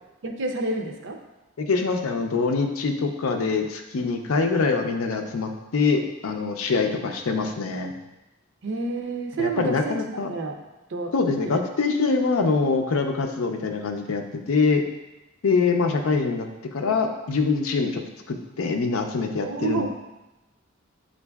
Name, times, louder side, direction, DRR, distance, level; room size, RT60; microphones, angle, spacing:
voice 1, 0.2-1.2 8.6-10.0 10.3-10.6 10.9-11.1 11.4-11.6 15.4-15.7 19.4-19.9, right 3 dB, 60° right, 3 dB, 0.5 m, -29 dB
voice 2, 1.6-7.9 9.4-10.3 11.1-14.2 14.5-14.8 15.4-18.0 18.3-19.9, left 4 dB, 85° left, 4 dB, 0.5 m, -24 dB
7.6 x 2.5 x 2.3 m, 1.0 s
head